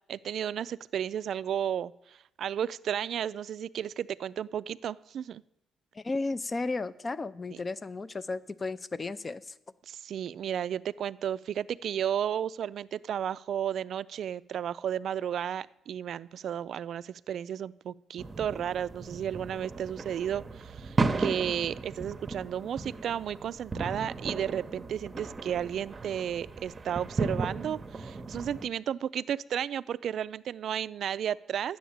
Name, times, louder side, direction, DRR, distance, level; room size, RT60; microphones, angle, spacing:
voice 1, 0.1-5.4 9.9-31.8, right 9 dB, 65° right, 18 dB, 0.3 m, -33 dB
voice 2, 5.9-9.5, left 3 dB, 30° left, 16 dB, 0.5 m, -34 dB
sound 1, 18.2-28.7, right 3 dB, 30° right, 0.8 m, -35 dB
10.0 x 7.3 x 8.6 m, 0.90 s
cardioid pair, 90°, 0 cm